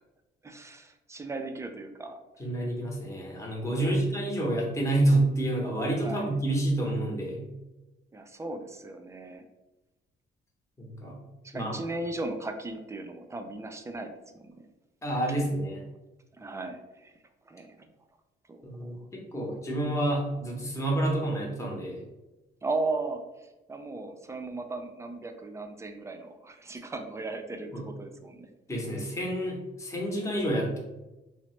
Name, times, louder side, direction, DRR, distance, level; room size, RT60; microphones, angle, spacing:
voice 1, 0.4-2.2 3.7-4.1 6.0-6.3 8.1-9.4 11.4-14.5 16.4-17.1 17.5-17.9 18.5-19.0 22.6-23.2 23.7-28.5, right 2 dB, 15° right, 6 dB, 0.3 m, -37 dB
voice 2, 2.4-7.5 10.8-11.2 11.5-11.8 15.0-15.8 18.6-22.0 27.7-27.8 28.7-30.8, right 1 dB, 15° left, -2 dB, 0.7 m, -28 dB
3.1 x 2.0 x 3.0 m, 1.0 s
cardioid pair, 90°, 20 cm